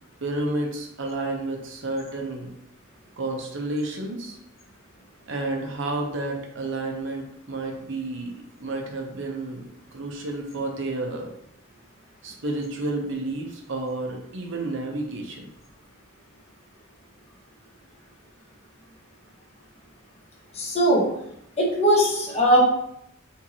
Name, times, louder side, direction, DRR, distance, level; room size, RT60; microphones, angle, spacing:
voice 1, 0.2-2.5 3.2-4.4 5.3-9.7 9.9-11.3 12.2-15.5, right 2 dB, 65° right, 1 dB, 0.9 m, -31 dB
voice 2, 20.5-21.1 21.6-22.6, equal, 30° left, -4 dB, 1.3 m, -19 dB
4.4 x 3.6 x 2.9 m, 0.75 s
head